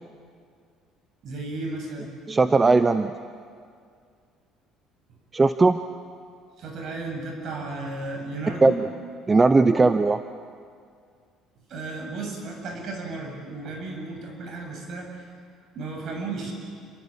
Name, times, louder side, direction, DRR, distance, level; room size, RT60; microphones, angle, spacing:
voice 1, 1.2-2.1 6.6-8.8 11.7-15.3 15.7-16.5, right 3 dB, 50° right, 2 dB, 7.8 m, -34 dB
voice 2, 2.3-3.2 5.3-5.8 8.6-8.9 9.3-10.2, right 3 dB, 15° right, 10 dB, 0.7 m, -18 dB
28.5 x 24.0 x 8.7 m, 2.2 s
cardioid pair, 145°, 0 cm